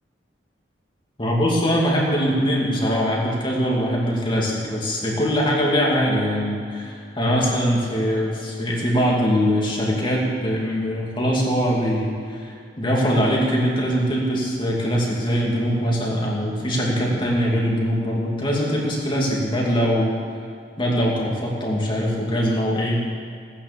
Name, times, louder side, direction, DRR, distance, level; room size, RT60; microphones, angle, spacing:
voice 1, 1.2-20.1 20.8-23.0, equal, 30° left, -3 dB, 2.6 m, -22 dB
17.0 x 10.0 x 7.0 m, 2.2 s
head